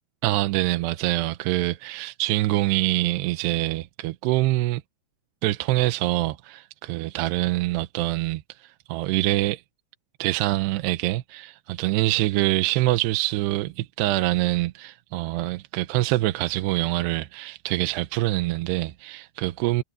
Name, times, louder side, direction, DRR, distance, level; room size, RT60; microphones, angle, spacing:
voice 1, 0.2-4.8 5.4-9.6 10.2-19.8, right 18 dB, 90° right, 2.8 m, -25 dB
omnidirectional pair, 4.8 m